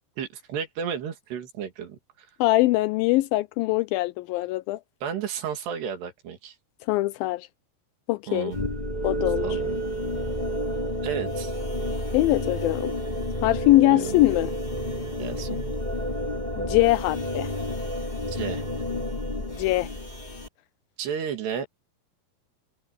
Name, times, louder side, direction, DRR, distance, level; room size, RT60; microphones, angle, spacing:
voice 1, 0.2-2.3 5.0-6.6 8.3-8.6 9.4-9.8 11.0-11.5 13.9-14.1 15.2-15.6 18.3-18.6 21.0-21.7, right 7 dB, 80° right, 4.9 m, -32 dB
voice 2, 2.4-4.8 6.9-7.5 8.1-8.5 9.0-9.6 12.1-12.9 13.4-14.5 16.6-17.5 19.6-19.9, left 18 dB, 90° left, 2.0 m, -22 dB
sound 1, 8.5-20.5, equal, 10° left, 2.5 m, -30 dB
omnidirectional pair, 4.7 m